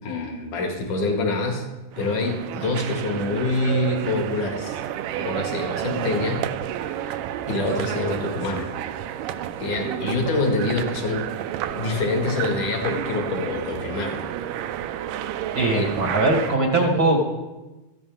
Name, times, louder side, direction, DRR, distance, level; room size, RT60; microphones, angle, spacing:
voice 1, 0.0-1.6 2.0-4.8 5.2-6.5 7.0-7.2 7.5-8.7 9.6-11.2 11.8-14.2 15.7-16.0, left 2 dB, 60° left, 2 dB, 3.2 m, -26 dB
sound 1, 1.9-16.6, right 11 dB, 80° right, 2.0 m, -30 dB
voice 2, 15.5-17.3, right 2 dB, 45° right, 1 dB, 1.2 m, -21 dB
17.5 x 13.5 x 3.6 m, 1.1 s
omnidirectional pair, 4.1 m